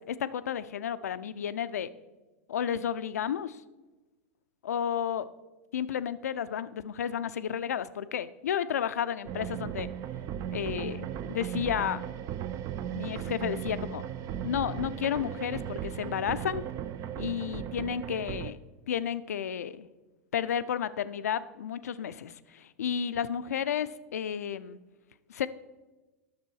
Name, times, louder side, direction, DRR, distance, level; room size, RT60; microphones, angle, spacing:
voice 1, 0.0-1.9 2.5-3.6 4.6-5.3 5.7-9.9 10.5-12.0 12.8-14.0 14.4-16.6 17.2-18.6 18.9-19.9 20.3-24.8 25.3-25.5, left 8 dB, 80° left, 14 dB, 0.4 m, -32 dB
sound 1, 9.3-18.5, right 10 dB, 40° right, 0.4 m, -36 dB
10.5 x 6.7 x 4.6 m, 1.1 s
hypercardioid pair, 100°, 8 cm